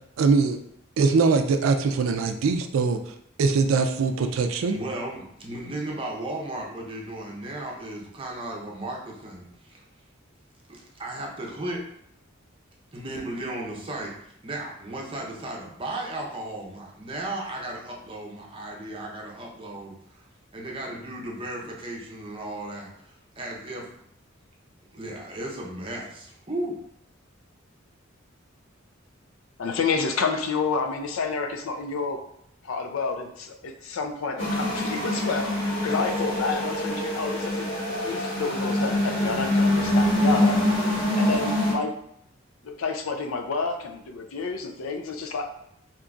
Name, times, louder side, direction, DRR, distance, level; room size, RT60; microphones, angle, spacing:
voice 1, 0.2-0.6 1.0-3.1 3.4-4.8, right 4 dB, 70° right, 7 dB, 0.3 m, -22 dB
voice 2, 4.7-9.8 10.7-11.8 12.9-14.1 14.4-20.2 20.5-23.9 24.9-26.8, right 1 dB, 25° right, -1 dB, 0.6 m, -35 dB
voice 3, 29.6-32.2 32.6-37.7 38.0-40.6 41.1-41.9 42.6-45.5, left 4 dB, 85° left, 5 dB, 0.4 m, -29 dB
sound 1, 34.4-41.7, left 1 dB, 65° left, 1.4 m, -24 dB
3.7 x 2.9 x 2.3 m, 0.72 s
head